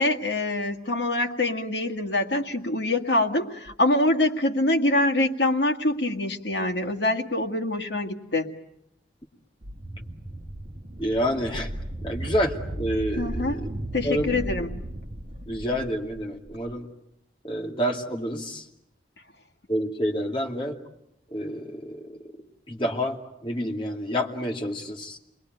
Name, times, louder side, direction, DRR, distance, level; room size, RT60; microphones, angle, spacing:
voice 1, 0.0-8.5 13.2-13.6 13.9-14.7, left 1 dB, 80° left, 3 dB, 2.0 m, -25 dB
sound 1, 9.6-16.7, right 1 dB, 40° right, 1.7 m, -35 dB
voice 2, 11.0-11.7 12.0-13.7 14.0-14.3 15.5-16.9 17.4-18.6 19.7-20.8 21.3-22.3 22.7-25.2, equal, 30° left, 1 dB, 2.6 m, -28 dB
28.5 x 21.5 x 9.3 m, 0.81 s
head